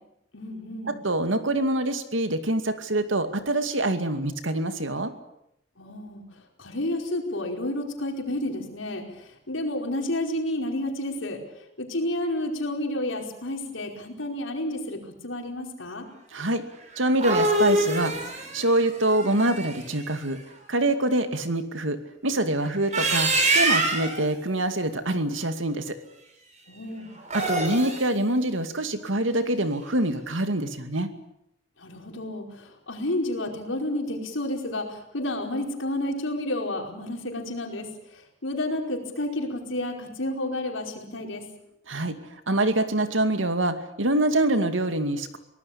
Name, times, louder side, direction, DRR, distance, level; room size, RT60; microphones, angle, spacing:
voice 1, 0.3-0.9 5.8-6.2 6.6-16.1 26.7-27.1 31.8-41.4, left 1 dB, 85° left, 3 dB, 4.9 m, -31 dB
voice 2, 0.9-5.1 16.3-16.6 17.0-20.4 20.7-22.0 22.2-26.0 27.3-31.1 41.9-42.2 42.5-45.4, right 1 dB, 80° right, 9 dB, 2.4 m, -25 dB
sound 1, 16.9-20.0 22.7-24.2 27.2-28.1, right 2 dB, 40° right, 5.6 m, -25 dB
24.0 x 18.5 x 8.7 m, 0.81 s
head